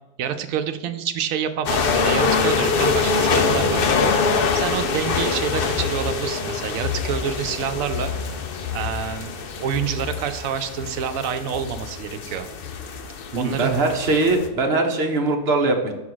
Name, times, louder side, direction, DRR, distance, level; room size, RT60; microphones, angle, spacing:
voice 1, 0.2-8.1 8.7-12.5 13.4-13.8, right 8 dB, 85° right, 8 dB, 1.1 m, -28 dB
sound 1, 1.7-14.5, left 5 dB, 55° left, 0.8 m, -24 dB
voice 2, 13.3-15.9, right 2 dB, 50° right, 3 dB, 1.2 m, -21 dB
6.2 x 3.7 x 6.1 m, 1.1 s
omnidirectional pair, 1.4 m